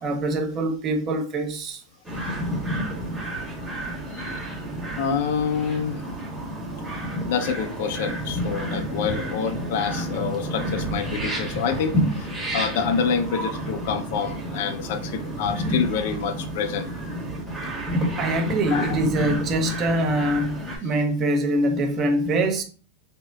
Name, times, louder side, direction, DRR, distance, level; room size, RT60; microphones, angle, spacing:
voice 1, 0.0-1.8 18.2-22.6, right 1 dB, 35° right, 0.6 m, -24 dB
sound 1, 2.0-20.8, right 1 dB, 10° right, 0.9 m, -30 dB
voice 2, 4.9-6.0 6.7-16.9 18.7-19.0, left 6 dB, 65° left, 0.4 m, -27 dB
3.4 x 2.0 x 2.2 m
supercardioid pair, 125°, 0 cm